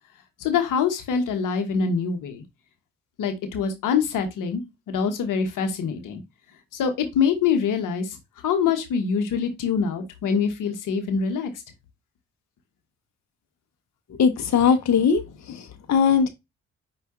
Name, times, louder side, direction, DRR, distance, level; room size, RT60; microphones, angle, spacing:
voice 1, 0.4-2.4 3.2-6.2 6.7-8.2 8.4-11.5, left 6 dB, 80° left, 1.0 m, -24 dB
voice 2, 14.1-15.2 15.5-16.3, left 6 dB, 60° left, 0.8 m, -20 dB
5.4 x 2.5 x 3.6 m
supercardioid pair, 55°, 31 cm